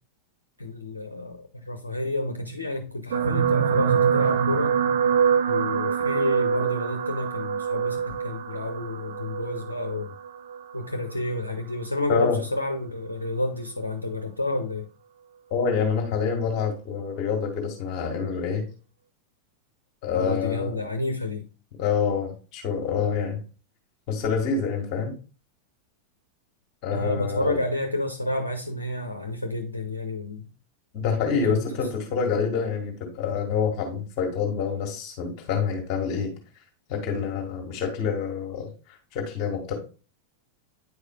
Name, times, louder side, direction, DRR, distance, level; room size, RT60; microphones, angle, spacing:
voice 1, 0.6-4.8 5.5-10.1 10.7-14.9 20.1-21.5 26.9-30.5 31.3-31.6, left 2 dB, 80° left, 0.7 m, -30 dB
sound 1, 3.1-11.6 12.3-12.6 12.8-12.9, right 7 dB, 60° right, 0.5 m, -25 dB
voice 2, 15.5-18.6 20.0-20.8 21.8-23.4 24.1-25.1 26.8-27.6 30.9-36.3 36.9-38.7 39.1-39.7, left 6 dB, 40° left, 1.7 m, -27 dB
9.4 x 4.8 x 2.2 m
figure-of-eight pair, 90°, 0 cm